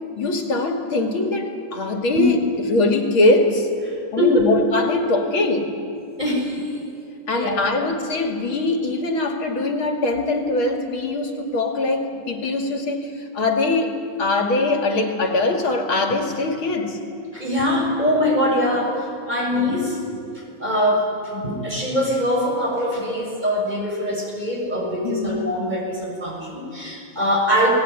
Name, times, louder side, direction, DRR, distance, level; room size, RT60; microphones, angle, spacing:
voice 1, 0.2-2.4 2.7-3.7 4.1-5.7 7.3-13.9 14.2-17.0 25.0-25.4, left 2 dB, 90° left, 3 dB, 3.3 m, -22 dB
voice 2, 4.2-4.5 6.2-6.7 7.3-7.6 17.3-19.0 19.2-20.2 20.6-27.7, equal, 20° right, -1 dB, 6.6 m, -22 dB
30.0 x 19.5 x 9.5 m, 2.6 s
omnidirectional pair, 2.2 m